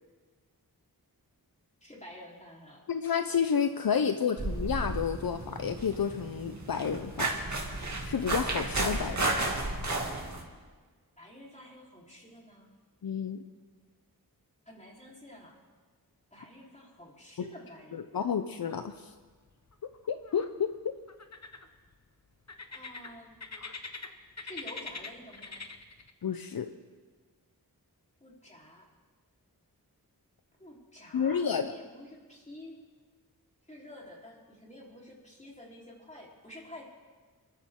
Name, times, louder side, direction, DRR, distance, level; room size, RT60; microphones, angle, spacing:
voice 1, 1.8-2.9 11.2-12.7 14.7-15.6 16.3-18.2 22.7-23.4 24.4-25.6 28.2-28.8 30.6-32.8 33.7-36.8, left 1 dB, 20° left, -3 dB, 3.8 m, -49 dB
voice 2, 2.9-7.3 8.0-9.5 13.0-13.4 17.9-19.1 20.1-20.7 26.2-26.7 31.1-31.7, left 7 dB, 70° left, 9 dB, 0.7 m, -30 dB
sound 1, 4.4-10.4, right 2 dB, 50° right, 2.5 m, -33 dB
sound 2, 18.7-19.3 19.5-20.5 21.1-21.9 22.5-24.1 24.4-26.1, left 4 dB, 45° left, 1.2 m, -43 dB
28.0 x 13.5 x 3.7 m, 1.4 s
wide cardioid pair, 85°, 37 cm